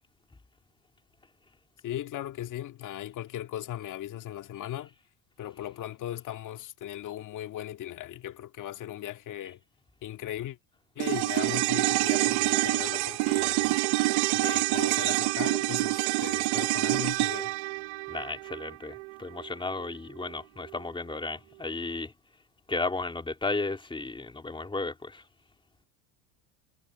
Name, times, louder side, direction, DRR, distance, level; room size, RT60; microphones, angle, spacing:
voice 1, 1.8-4.9 5.4-9.6 10.0-10.6 11.0-13.8 14.3-17.5, left 12 dB, 50° left, 2.0 m, -38 dB
sound 1, 11.0-19.5 19.8-19.9, right 23 dB, 70° right, 0.8 m, -27 dB
voice 2, 18.1-22.1 22.7-25.2, left 3 dB, 10° left, 2.9 m, -34 dB
supercardioid pair, 110°, 40 cm